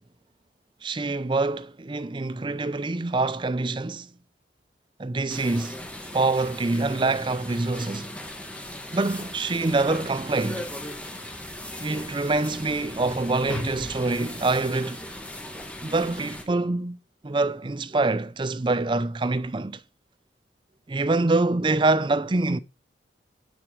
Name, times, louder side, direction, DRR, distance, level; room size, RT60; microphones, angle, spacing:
voice 1, 0.8-4.1 5.0-5.8 6.1-8.1 8.9-10.7 11.8-15.1 15.8-17.0 17.2-19.8 20.9-22.6, right 3 dB, 25° right, 0.5 m, -25 dB
sound 1, 5.3-16.4, left 1 dB, 10° left, 1.8 m, -37 dB
10.0 x 7.1 x 4.6 m
head